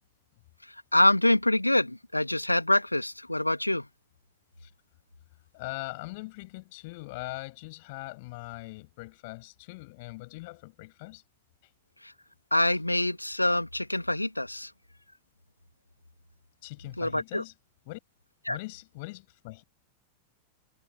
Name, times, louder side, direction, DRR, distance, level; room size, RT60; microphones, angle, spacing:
voice 1, 0.9-3.9 12.0-12.1 12.5-14.7 17.0-17.4 18.5-18.6, left 1 dB, 85° left, 2.7 m, -25 dB
voice 2, 5.5-11.2 16.6-17.5 17.9-18.0 18.5-19.6, left 24 dB, 50° left, 7.4 m, -41 dB
figure-of-eight pair, 90°, 0 cm